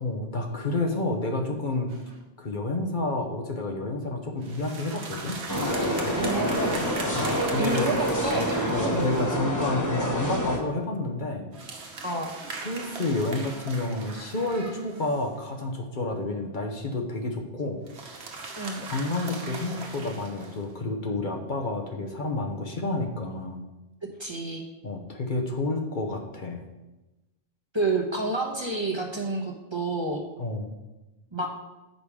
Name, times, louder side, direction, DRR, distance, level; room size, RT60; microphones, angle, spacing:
voice 1, 0.0-1.9 2.4-5.4 7.2-7.9 8.7-11.5 12.6-17.8 18.9-23.6 24.8-26.6 30.4-30.7, left 2 dB, 50° left, 2 dB, 1.0 m, -30 dB
sound 1, 1.9-2.2 4.4-9.4 11.5-15.4 17.9-20.6, right 3 dB, 85° right, 1.2 m, -39 dB
sound 2, 5.5-10.6, equal, 20° left, 1.1 m, -27 dB
voice 2, 6.2-6.8 7.6-8.7 12.0-12.3 18.5-18.8 24.2-24.6 27.7-30.2 31.3-31.5, right 2 dB, 25° right, 0 dB, 1.0 m, -29 dB
8.7 x 5.2 x 4.8 m, 1.1 s
omnidirectional pair, 1.1 m